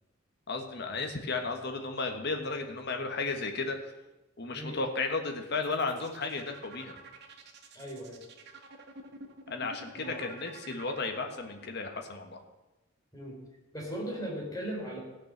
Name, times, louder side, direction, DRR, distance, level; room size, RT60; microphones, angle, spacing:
voice 1, 0.5-3.9 4.4-7.0 9.5-12.4, left 3 dB, 55° left, 4 dB, 1.6 m, -34 dB
sound 1, 5.5-11.7, right 3 dB, 55° right, 1.7 m, -49 dB
voice 2, 7.7-8.2 9.9-10.3 13.1-13.4 13.7-15.0, equal, 15° left, -2 dB, 3.8 m, -38 dB
15.5 x 6.4 x 7.5 m, 1.1 s
head